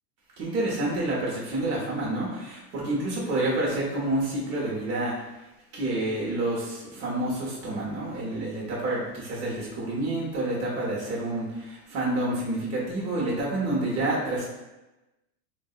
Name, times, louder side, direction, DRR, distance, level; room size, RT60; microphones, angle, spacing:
voice 1, 0.4-5.2 5.7-14.5, right 2 dB, 65° right, -5 dB, 1.1 m, -28 dB
3.7 x 2.6 x 2.4 m, 1.0 s
supercardioid pair, 145°, 50 cm